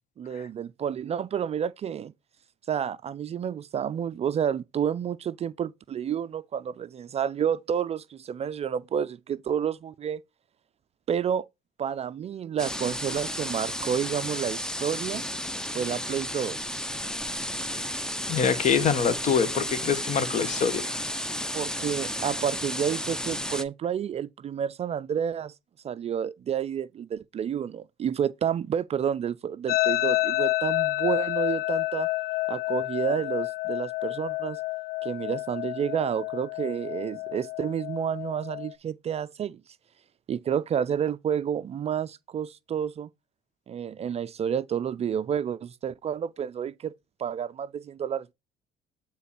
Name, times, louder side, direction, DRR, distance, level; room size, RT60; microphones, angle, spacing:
voice 1, 0.2-2.1 2.7-10.2 11.1-11.4 11.8-15.2 15.7-16.7 21.5-25.5 25.8-32.1 32.5-34.6 35.0-39.6 40.3-43.1 43.7-46.9 47.2-48.3, right 8 dB, 40° right, 0.4 m, -30 dB
sound 1, 12.6-23.6, equal, 5° left, 0.7 m, -33 dB
voice 2, 18.3-20.9, left 6 dB, 45° left, 1.3 m, -25 dB
sound 2, 29.7-38.7, left 19 dB, 65° left, 0.5 m, -29 dB
8.7 x 3.7 x 4.3 m
cardioid pair, 110°, 17 cm